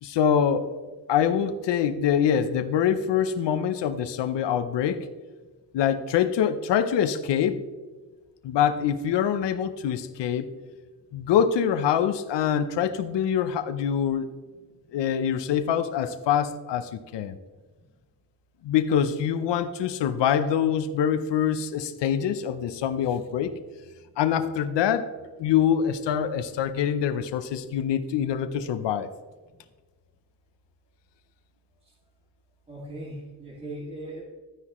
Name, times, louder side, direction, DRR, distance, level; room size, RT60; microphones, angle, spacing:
voice 1, 0.0-5.1 5.7-7.6 8.4-10.5 11.1-14.3 14.9-17.4 18.6-23.6 24.2-25.1 25.4-29.1, left 8 dB, 85° left, 9 dB, 0.7 m, -25 dB
voice 2, 32.7-34.2, right 1 dB, 15° right, -6 dB, 2.1 m, -38 dB
12.5 x 9.7 x 3.0 m, 1.4 s
wide cardioid pair, 145°, 41 cm